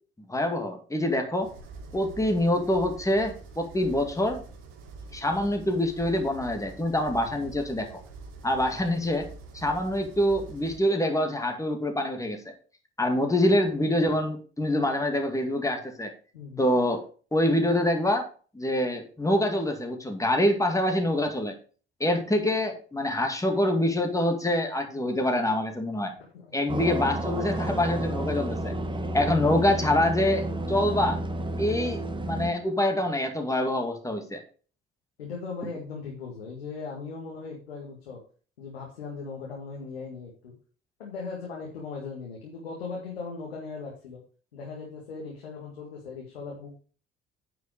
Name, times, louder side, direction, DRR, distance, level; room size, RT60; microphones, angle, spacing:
voice 1, 0.3-1.5 1.9-4.4 5.1-7.9 8.4-12.4 13.0-16.1 16.6-17.0 17.3-18.3 18.5-21.5 22.0-26.1 26.5-28.7 29.1-31.2 31.6-34.4, left 1 dB, 10° left, 4 dB, 2.4 m, -25 dB
sound 1, 1.4-10.8, right 4 dB, 65° right, 2.2 m, -45 dB
voice 2, 16.3-16.7 26.3-26.5 29.1-29.3 35.2-38.2 38.6-40.5 41.0-44.2 44.5-46.8, left 4 dB, 85° left, -2 dB, 1.9 m, -38 dB
sound 2, 26.7-32.5, right 1 dB, 15° right, 1.6 m, -31 dB
9.2 x 5.8 x 5.1 m, 0.39 s
figure-of-eight pair, 50°, 30 cm